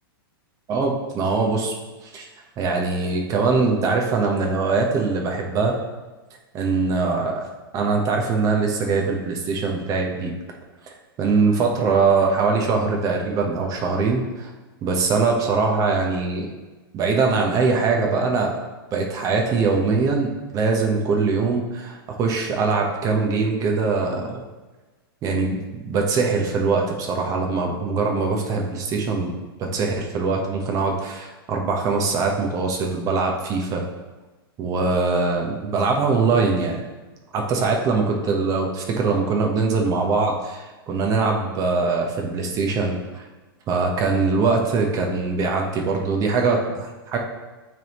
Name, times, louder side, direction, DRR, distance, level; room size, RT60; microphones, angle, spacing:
voice 1, 0.7-1.7 2.1-2.3 2.6-5.8 6.5-7.4 7.7-10.3 11.2-14.5 14.8-16.5 16.9-18.6 18.9-24.4 25.2-33.9 34.6-36.8 37.3-43.3 43.7-47.2, right 4 dB, 25° right, 1 dB, 1.0 m, -22 dB
9.0 x 3.6 x 3.0 m, 1.2 s
hypercardioid pair, 140°, 13 cm